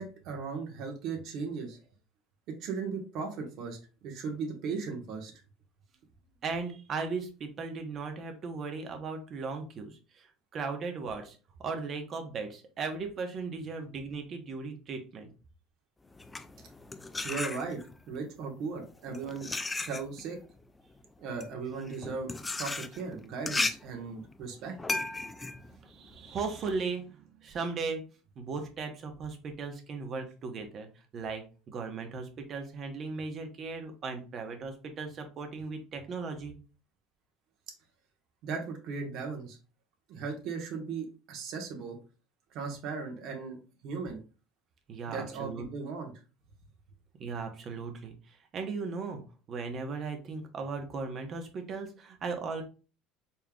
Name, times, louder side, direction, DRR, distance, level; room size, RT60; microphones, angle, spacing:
voice 1, 0.0-1.8 2.5-5.3 17.2-17.8 18.1-19.5 19.9-20.4 21.2-22.3 22.6-24.8 38.4-39.6 40.1-42.0 42.5-43.6 43.8-44.2 45.1-46.1, right 5 dB, 65° right, 2 dB, 1.4 m, -37 dB
voice 2, 6.4-10.3 10.5-15.3 25.7-28.0 28.4-30.9 31.1-36.6 44.9-45.6 47.2-49.2 49.5-52.6, right 4 dB, 45° right, 4 dB, 1.1 m, -37 dB
sound 1, 16.1-18.0 18.8-26.7, left 3 dB, 15° left, 0.4 m, -36 dB
4.2 x 3.6 x 2.4 m, 0.35 s
supercardioid pair, 95°, 0 cm